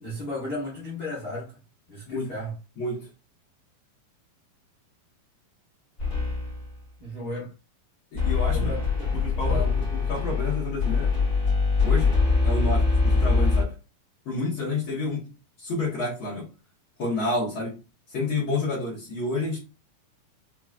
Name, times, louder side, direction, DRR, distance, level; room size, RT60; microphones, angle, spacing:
voice 1, 0.0-1.6 1.9-2.5 7.0-7.5 8.5-9.1 9.4-9.8, left 1 dB, 90° left, 0.8 m, -34 dB
voice 2, 2.8-3.1 8.1-8.7 9.2-11.1 11.8-12.1 12.4-13.7 14.2-15.3 15.6-16.5 17.0-17.8 18.1-19.6, left 2 dB, 60° left, 1.4 m, -29 dB
sound 1, 6.0-6.7 8.2-13.6, left 4 dB, 40° left, 1.2 m, -23 dB
5.7 x 2.3 x 2.4 m
omnidirectional pair, 4.1 m